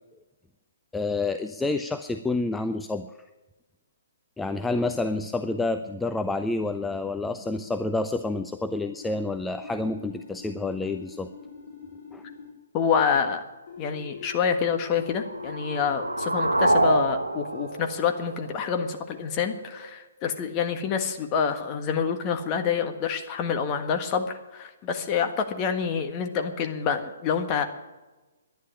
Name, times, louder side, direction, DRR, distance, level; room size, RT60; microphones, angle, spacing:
voice 1, 0.9-3.1 4.4-11.3 12.1-12.2, left 2 dB, 5° left, 8 dB, 0.5 m, -28 dB
sound 1, 4.4-7.9 9.0-12.5 13.7-16.8 17.5-19.9, left 4 dB, 50° left, 2.6 m, -45 dB
voice 2, 12.7-13.4 13.8-27.6, left 6 dB, 25° left, 6 dB, 1.5 m, -27 dB
sound 2, 15.0-19.0, right 1 dB, 85° right, 1.0 m, -26 dB
11.0 x 10.5 x 9.9 m, 1.1 s
figure-of-eight pair, 125°, 0 cm